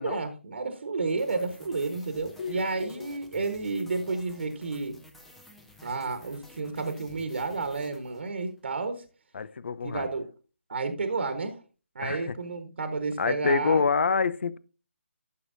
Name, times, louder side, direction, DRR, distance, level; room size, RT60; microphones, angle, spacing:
voice 1, 0.0-5.0 5.8-9.0 9.8-10.3 10.7-11.6 11.9-13.8, right 3 dB, 60° right, 1.3 m, -31 dB
sound 1, 1.1-8.6, left 1 dB, 5° left, 0.8 m, -53 dB
voice 2, 2.4-2.9 9.3-10.1 12.0-12.2 13.2-14.6, left 5 dB, 60° left, 0.6 m, -27 dB
12.5 x 6.4 x 2.7 m
figure-of-eight pair, 150°, 7 cm